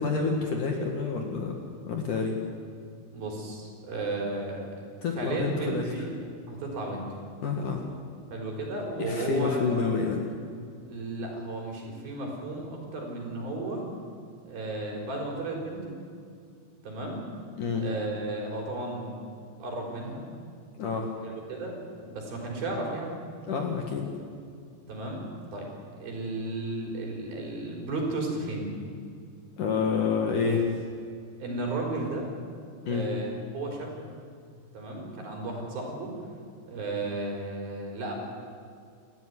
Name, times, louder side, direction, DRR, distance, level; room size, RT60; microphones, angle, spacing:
voice 1, 0.0-1.5 1.8-2.4 5.0-5.8 7.4-7.8 9.0-10.2 17.6-17.8 20.8-21.1 23.5-24.1 29.6-30.6 32.9-33.1, left 5 dB, 55° left, 2 dB, 2.8 m, -28 dB
voice 2, 3.1-4.7 5.2-6.2 6.5-7.1 8.3-9.7 10.9-13.8 14.5-15.9 16.8-17.3 17.8-19.1 19.6-20.2 21.2-23.2 24.9-25.2 25.5-25.7 26.0-28.7 31.4-32.3 32.8-33.9 34.7-36.1 36.7-38.1, right 2 dB, 55° right, 0 dB, 6.0 m, -34 dB
29.0 x 14.0 x 9.7 m, 2.3 s
omnidirectional pair, 5.2 m